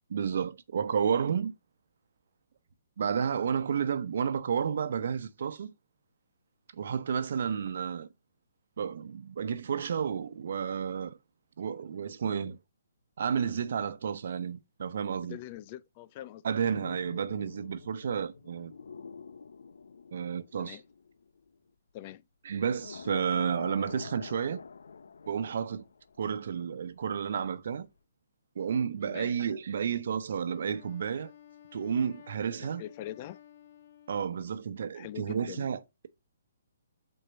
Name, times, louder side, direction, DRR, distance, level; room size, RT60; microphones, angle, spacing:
voice 1, 0.1-1.5 3.0-5.7 6.7-8.1 8.8-11.2 11.6-12.6 13.2-15.4 16.4-18.7 20.1-20.8 22.4-24.6 25.3-25.8 26.2-27.9 28.6-31.3 31.7-32.8 34.1-35.8, right 7 dB, 60° right, 0.9 m, -31 dB
voice 2, 15.3-16.4 20.6-20.8 21.9-22.2 29.1-29.3 32.6-33.4 34.9-35.7, left 13 dB, 35° left, 0.5 m, -43 dB
sound 1, 16.6-21.7 22.6-26.6 26.8-27.0, left 5 dB, 75° left, 0.6 m, -47 dB
Wind instrument woodwind instrument, 30.5-34.8, left 9 dB, 60° left, 1.1 m, -54 dB
6.7 x 4.5 x 4.2 m
hypercardioid pair, 145°, 0 cm